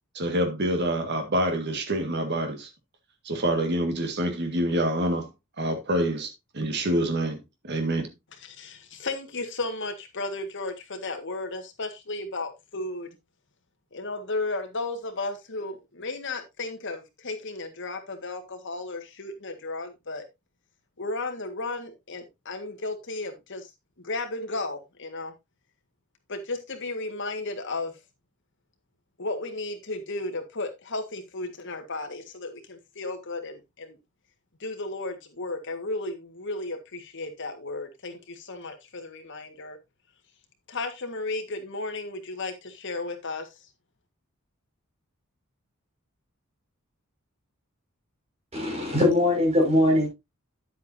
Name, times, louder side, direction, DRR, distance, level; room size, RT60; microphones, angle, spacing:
voice 1, 0.1-2.7 3.3-5.3 5.6-8.1, right 1 dB, 55° right, 1.9 m, -27 dB
voice 2, 8.4-13.1 13.9-20.2 21.0-23.7 24.0-25.3 26.3-27.9 29.2-34.0 34.6-39.8 40.7-43.5, left 2 dB, 60° left, 1.8 m, -34 dB
voice 3, 48.5-50.1, left 1 dB, 30° right, 5.8 m, -21 dB
10.0 x 8.2 x 2.7 m
head